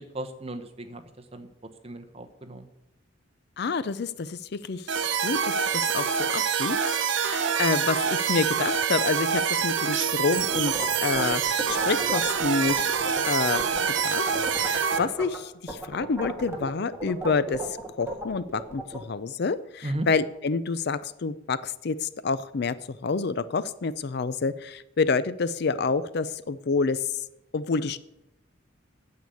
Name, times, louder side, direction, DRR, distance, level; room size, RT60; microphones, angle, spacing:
voice 1, 0.1-1.0 1.3-1.5 1.8-2.7 19.8-20.1, right 1 dB, 30° right, 6 dB, 1.0 m, -35 dB
voice 2, 3.6-4.9 5.2-12.9 13.3-14.2 14.6-17.6 18.0-22.7 23.0-27.1 27.5-28.0, left 4 dB, 55° left, 15 dB, 0.5 m, -28 dB
sound 1, 4.9-15.0, right 7 dB, 65° right, 0.8 m, -26 dB
sound 2, 10.4-14.0 14.3-15.4 15.7-19.0, right 2 dB, 15° right, 1.6 m, -34 dB
9.3 x 6.9 x 8.4 m, 0.88 s
head